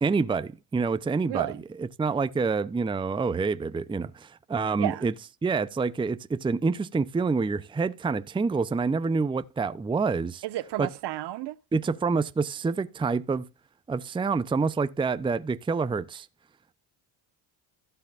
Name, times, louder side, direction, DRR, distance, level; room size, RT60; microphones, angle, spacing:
voice 1, 0.0-5.1 5.4-10.4 10.8-10.9 11.7-13.5 13.9-16.3, right 4 dB, 10° right, 0.6 m, -27 dB
voice 2, 1.3-1.6 4.8-5.0 10.4-11.5, right 14 dB, 60° right, 1.4 m, -32 dB
16.0 x 5.7 x 2.5 m
supercardioid pair, 90°, 47 cm